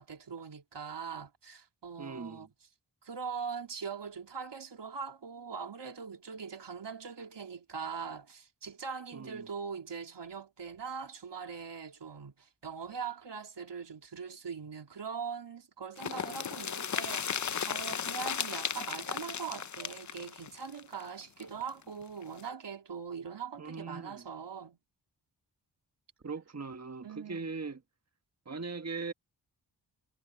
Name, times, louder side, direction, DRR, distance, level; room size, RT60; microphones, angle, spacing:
voice 1, 0.0-2.5 3.0-24.8 27.0-27.6, right 6 dB, 75° right, 3.3 m, -41 dB
voice 2, 2.0-2.5 9.1-9.5 23.6-24.3 26.2-27.8 28.4-29.1, right 4 dB, 35° right, 1.6 m, -40 dB
sound 1, 16.0-21.7 22.0-22.1 22.4-22.5, left 7 dB, 40° left, 0.7 m, -36 dB
cardioid pair, 45°, 43 cm